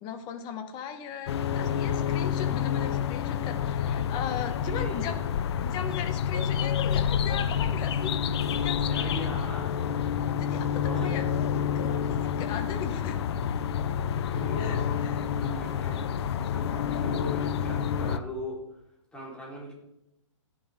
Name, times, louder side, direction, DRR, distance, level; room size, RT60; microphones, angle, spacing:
voice 1, 0.0-5.1 5.6-8.1 8.6-9.3 10.3-11.2 11.7-13.2 14.6-15.2, left 7 dB, 25° left, 7 dB, 1.6 m, -38 dB
sound 1, 1.3-18.2, left 8 dB, 55° left, 0.8 m, -28 dB
voice 2, 4.6-5.1 8.9-9.7 10.8-11.1 14.2-16.1 16.5-18.6 19.1-19.7, equal, 5° left, -5 dB, 4.7 m, -40 dB
14.0 x 11.0 x 3.9 m, 0.83 s
hypercardioid pair, 140°, 16 cm